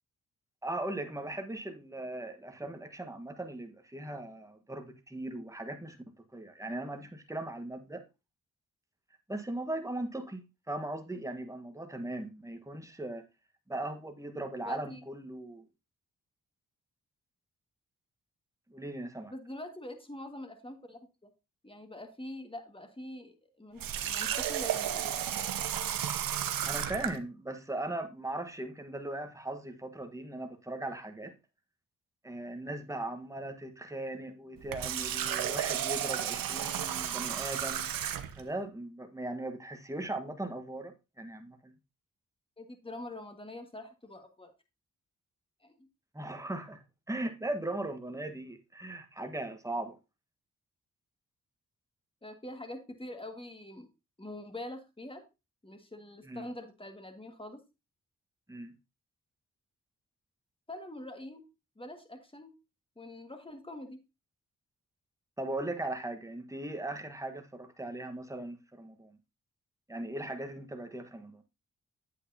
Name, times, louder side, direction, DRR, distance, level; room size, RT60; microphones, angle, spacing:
voice 1, 0.6-6.0 6.3-8.0 9.3-13.2 13.7-15.7 18.7-19.3 26.6-31.3 32.2-37.9 38.3-41.7 46.1-50.0 56.2-56.5 58.5-58.7 65.4-69.2 69.9-71.4, right 1 dB, 10° right, 1.4 m, -38 dB
voice 2, 14.7-15.0 19.3-21.3 21.6-25.3 42.6-44.5 45.6-45.8 52.2-53.9 54.2-55.2 55.6-57.6 60.7-61.4 61.8-62.5 63.0-64.0, left 1 dB, 15° left, 1.8 m, -44 dB
Water tap faucet, 23.8-27.2 34.6-38.4, right 10 dB, 80° right, 0.8 m, -33 dB
8.3 x 8.1 x 2.8 m
supercardioid pair, 50°, 34 cm